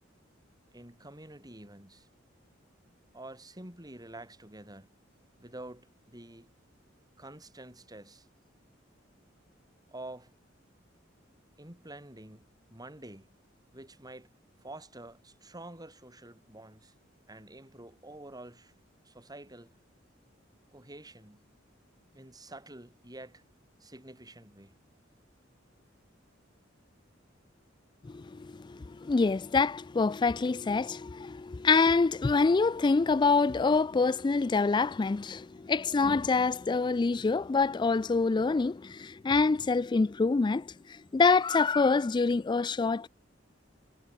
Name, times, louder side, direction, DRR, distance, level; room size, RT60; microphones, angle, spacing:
voice 1, 0.7-2.1 3.1-4.9 5.4-6.5 7.2-8.3 9.9-10.3 11.6-13.3 13.7-14.3 14.6-16.9 17.3-18.7 19.0-19.8 20.7-21.5 22.1-23.4 23.8-24.7, right 1 dB, 20° right, 6.5 m, -48 dB
voice 2, 28.0-43.1, left 4 dB, 25° left, 0.3 m, -26 dB
head